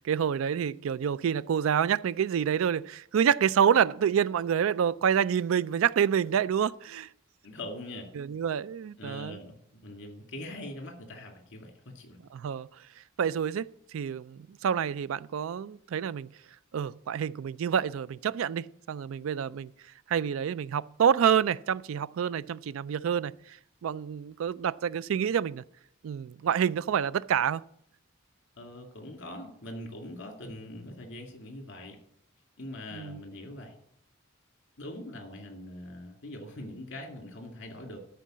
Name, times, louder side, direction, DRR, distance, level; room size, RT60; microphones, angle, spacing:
voice 1, 0.0-7.1 8.2-9.4 12.3-12.7 13.2-13.7 13.9-16.3 16.7-19.7 20.1-23.3 23.8-25.6 26.0-27.6 32.9-33.2, right 8 dB, 70° right, 0.3 m, -27 dB
voice 2, 7.4-8.1 9.0-12.2 28.6-32.0 32.6-33.7 34.8-38.0, left 1 dB, 60° left, 2.3 m, -42 dB
13.0 x 4.6 x 7.4 m
head